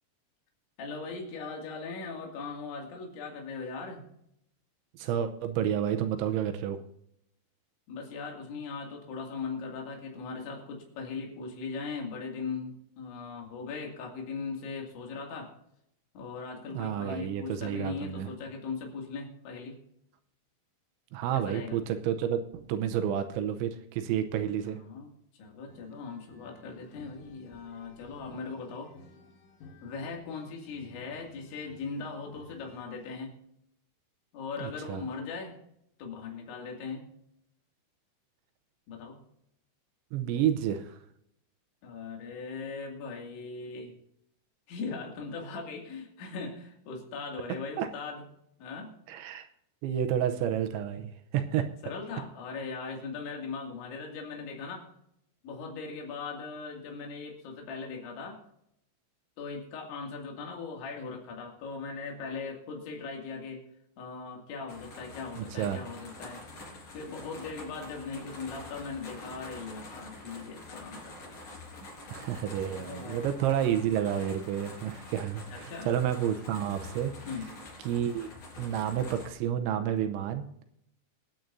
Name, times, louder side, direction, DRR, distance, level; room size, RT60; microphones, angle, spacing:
voice 1, 0.8-4.1 7.9-15.5 16.1-19.8 21.3-21.8 24.6-28.9 29.8-33.4 34.3-35.6 36.0-37.1 38.9-39.2 41.8-43.9 44.7-48.2 48.6-48.9 51.8-54.9 55.4-58.4 59.4-63.6 64.0-66.4 66.9-71.2 72.7-73.3 75.5-75.9 77.3-77.5, left 4 dB, 70° left, 0 dB, 4.6 m, -39 dB
voice 2, 4.9-6.8 16.7-18.3 21.1-24.8 34.6-35.0 40.1-41.0 47.8-47.9 49.1-49.4 49.8-51.7 65.4-65.8 72.1-77.1 77.9-78.3 78.6-80.5, right 10 dB, 80° right, 7 dB, 2.9 m, -30 dB
sound 1, 25.7-33.2, left 3 dB, 90° left, 4.4 m, -55 dB
sound 2, 64.7-79.3, left 2 dB, 45° left, 5.4 m, -46 dB
25.0 x 9.2 x 2.7 m, 0.76 s
omnidirectional pair, 5.8 m